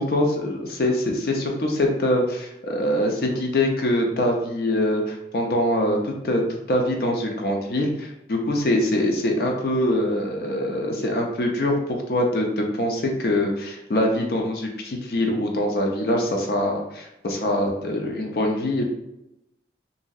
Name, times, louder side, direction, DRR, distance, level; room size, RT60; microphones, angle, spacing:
voice 1, 0.0-6.4 6.7-18.8, left 1 dB, 55° left, 1 dB, 0.4 m, -24 dB
2.9 x 2.6 x 2.3 m, 0.88 s
head